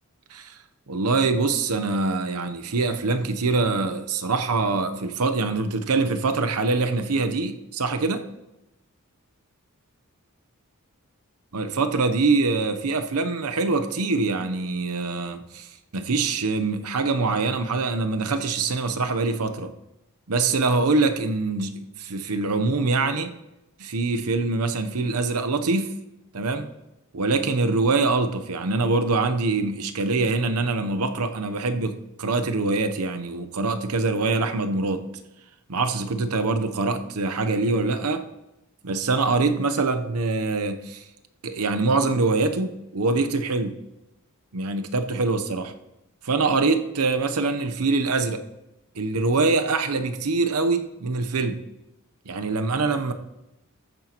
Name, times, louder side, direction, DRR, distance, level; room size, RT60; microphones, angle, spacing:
voice 1, 0.9-8.2 11.5-15.7 15.9-19.7 20.3-23.3 23.8-26.0 26.3-26.7 27.1-35.1 35.7-38.2 38.8-41.0 41.4-43.8 44.5-45.7 46.2-48.4 48.9-51.6 52.3-53.1, right 3 dB, 85° right, 0.8 m, -24 dB
14.0 x 9.0 x 3.0 m
head